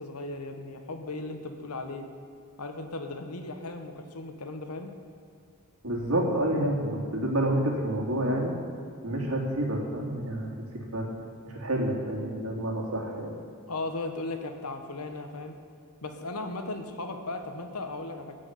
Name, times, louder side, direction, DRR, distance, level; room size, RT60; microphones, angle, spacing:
voice 1, 0.0-2.0 2.6-4.9 13.7-15.5 16.0-18.3, left 2 dB, 90° left, 6 dB, 1.4 m, -36 dB
voice 2, 5.8-8.5 9.0-10.7 10.9-11.1 11.4-13.3, right 1 dB, 70° right, -1 dB, 2.9 m, -28 dB
15.5 x 6.3 x 9.4 m, 2.3 s
head